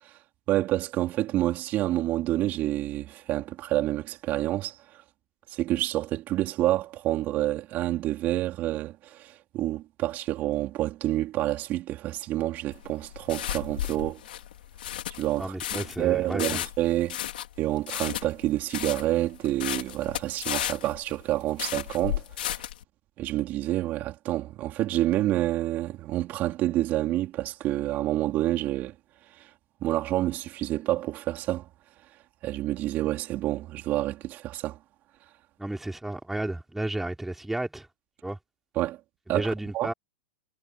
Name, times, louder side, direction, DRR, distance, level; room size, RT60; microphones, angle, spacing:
voice 1, 0.5-4.8 5.5-14.2 15.2-17.2 17.6-22.5 23.2-28.9 29.4-29.5 29.8-31.7 32.4-34.8 38.8-39.0 39.3-39.9, right 15 dB, 35° right, 4.3 m, -28 dB
sound 1, 12.7-22.8, left 12 dB, 85° left, 4.0 m, -34 dB
voice 2, 15.4-16.6 35.6-37.9 38.2-38.4 39.3-39.9, right 1 dB, 5° right, 3.5 m, -32 dB
supercardioid pair, 140°, 5 cm